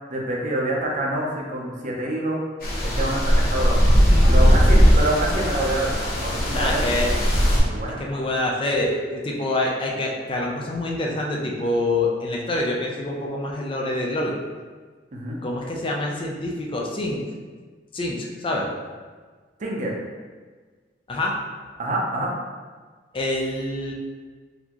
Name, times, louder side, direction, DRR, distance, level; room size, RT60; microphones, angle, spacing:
voice 1, 0.1-2.4 2.8-3.9 4.3-5.9 6.2-6.8 7.6-8.0 15.1-15.4 19.6-19.9 21.8-22.3, right 1 dB, 45° right, -1 dB, 0.6 m, -26 dB
sound 1, 2.6-7.6, equal, 55° left, 1.1 m, -18 dB
voice 2, 4.1-4.5 6.5-7.1 8.0-14.3 15.4-17.2 17.9-18.7 21.1-21.3 23.1-23.9, left 1 dB, 30° left, -1 dB, 0.5 m, -26 dB
4.1 x 2.7 x 2.9 m, 1.4 s
head